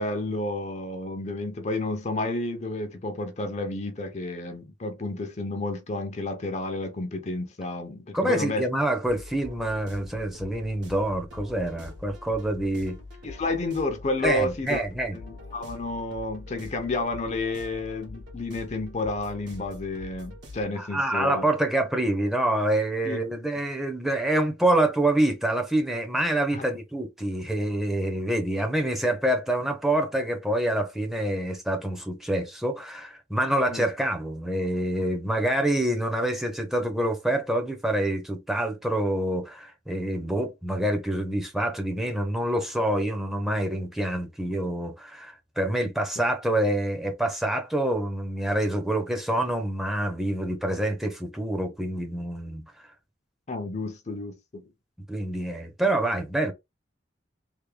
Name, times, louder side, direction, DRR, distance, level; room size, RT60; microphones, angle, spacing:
voice 1, 0.0-8.6 13.2-14.8 15.1-21.4 23.0-23.2 26.5-26.6 33.7-33.9 53.5-54.6, left 2 dB, 40° left, 0.5 m, -31 dB
voice 2, 8.1-13.0 14.2-15.2 20.8-52.6 55.1-56.5, right 1 dB, ahead, 0.6 m, -26 dB
sound 1, 9.0-20.7, left 2 dB, 75° right, 1.4 m, -44 dB
3.4 x 2.2 x 3.2 m
head